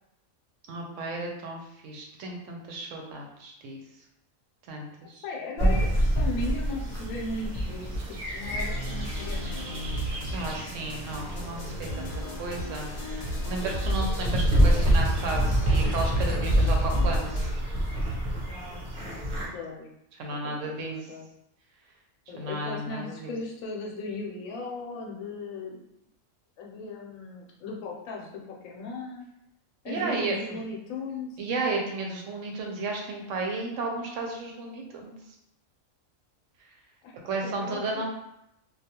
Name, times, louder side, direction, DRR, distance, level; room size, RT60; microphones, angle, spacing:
voice 1, 0.7-3.8 4.7-5.2 10.3-17.5 20.2-20.9 22.4-23.3 29.9-30.4 31.4-35.2 37.2-38.0, right 3 dB, 75° right, 1 dB, 0.9 m, -33 dB
voice 2, 5.2-8.0 8.3-9.7 18.4-19.9 20.3-21.3 22.3-25.8 26.6-29.2 29.8-31.4 37.0-37.1 37.4-37.8, left 2 dB, 85° left, -1 dB, 1.0 m, -37 dB
sound 1, 5.6-19.5, equal, 50° right, 0.7 m, -27 dB
sound 2, 8.4-17.5, left 1 dB, 60° left, 0.8 m, -38 dB
2.3 x 2.3 x 2.8 m, 0.80 s
omnidirectional pair, 1.4 m